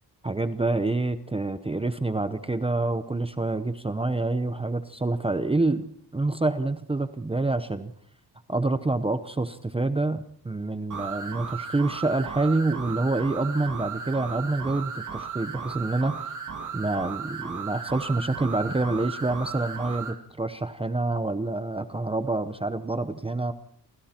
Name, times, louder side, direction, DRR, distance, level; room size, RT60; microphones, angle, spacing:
voice 1, 0.2-5.9 6.1-7.9 8.5-16.3 16.7-23.5, right 2 dB, 15° right, 10 dB, 0.8 m, -27 dB
sound 1, 10.9-20.2, right 6 dB, 45° right, 2.7 m, -36 dB
28.5 x 23.5 x 4.4 m, 0.63 s
wide cardioid pair, 155°, 41 cm